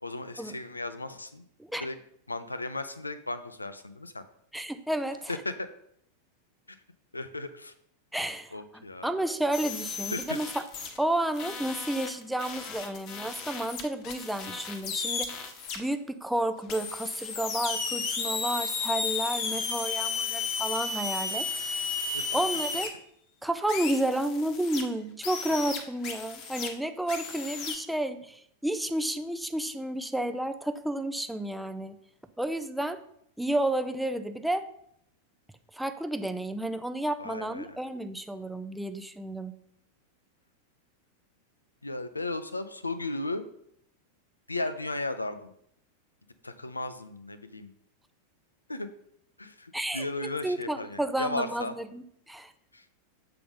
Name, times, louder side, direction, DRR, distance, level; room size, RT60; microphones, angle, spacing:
voice 1, 0.0-1.5 1.8-2.0 2.3-4.2 5.3-5.7 6.7-6.8 7.1-7.7 8.5-9.1 10.1-10.4 22.1-22.4 37.2-37.8 41.8-43.5 44.5-45.5 46.4-47.7 48.7-48.9 49.4-51.7 52.7-52.9, left 2 dB, 80° left, 11 dB, 0.5 m, -35 dB
voice 2, 4.5-5.3 8.1-8.5 9.0-10.5 11.0-15.4 15.8-21.5 22.3-22.9 23.4-32.0 32.4-33.0 33.4-34.7 35.7-39.5 49.7-50.0 50.4-52.5, right 1 dB, 5° right, 9 dB, 0.5 m, -31 dB
sound 1, 9.5-11.0 11.3-15.8 16.7-22.9 23.7-24.8 25.2-26.7 27.1-27.8, left 5 dB, 40° left, 1.0 m, -34 dB
6.8 x 3.8 x 5.1 m, 0.71 s
figure-of-eight pair, 90°, 0 cm